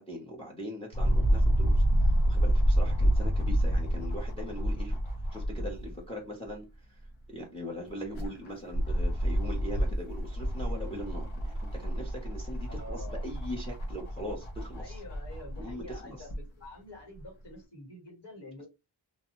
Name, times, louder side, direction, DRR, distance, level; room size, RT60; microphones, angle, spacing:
voice 1, 0.0-5.0 5.3-7.0 7.3-15.0 15.6-16.2, equal, 10° left, 0.7 m, -41 dB
sound 1, 0.9-6.0 6.4-6.5 7.9-16.4 17.2-17.3, equal, 80° left, 1.0 m, -28 dB
voice 2, 12.7-13.3 14.8-18.7, left 1 dB, 60° left, 1.7 m, -47 dB
2.6 x 2.2 x 2.9 m
wide cardioid pair, 160°, 47 cm